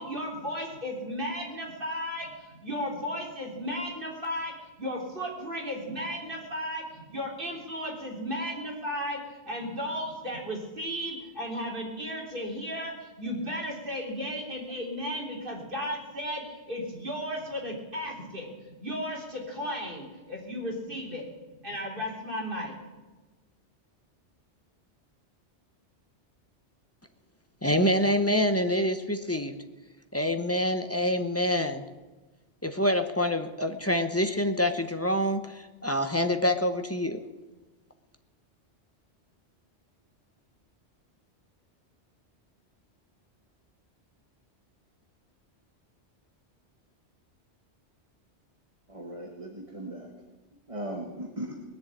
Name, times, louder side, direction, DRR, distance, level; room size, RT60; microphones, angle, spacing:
voice 1, 0.0-21.3 21.6-22.8, equal, 50° right, -1 dB, 3.6 m, -35 dB
voice 2, 27.6-29.6 30.1-31.8 32.6-37.2, left 1 dB, 15° left, 7 dB, 0.8 m, -26 dB
voice 3, 48.9-50.1 50.7-51.6, right 1 dB, 30° right, 0 dB, 1.6 m, -38 dB
20.5 x 7.2 x 8.8 m, 1.2 s
omnidirectional pair, 1.2 m